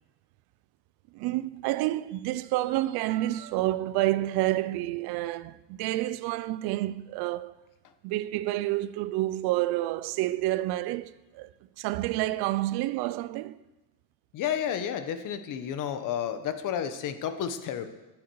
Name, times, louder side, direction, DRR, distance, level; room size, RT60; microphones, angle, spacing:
voice 1, 1.1-7.5 8.0-11.5 11.8-13.6, right 16 dB, 55° right, 0.6 m, -29 dB
voice 2, 14.3-17.9, left 9 dB, 45° left, 1.1 m, -31 dB
21.0 x 7.4 x 4.7 m
cardioid pair, 160°, 44 cm